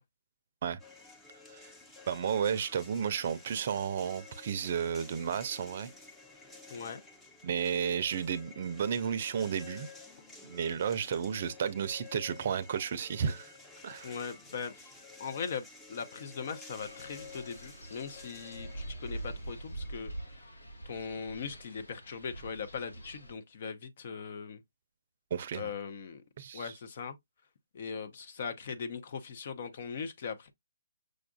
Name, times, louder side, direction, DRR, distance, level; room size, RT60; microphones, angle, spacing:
sound 1, 0.8-20.4, left 4 dB, 10° left, 0.7 m, -52 dB
voice 1, 2.1-5.9 7.4-9.9 10.4-13.5 13.8-14.1 25.3-25.7 26.4-26.7, right 7 dB, 45° right, 0.5 m, -32 dB
voice 2, 6.7-7.0 14.0-20.5 20.8-24.6 25.5-26.2 26.5-27.2 27.7-30.5, left 6 dB, 50° left, 0.7 m, -40 dB
Wind, 16.8-23.3, right 1 dB, 90° left, 1.5 m, -44 dB
6.3 x 2.4 x 2.3 m
hypercardioid pair, 145°, 0 cm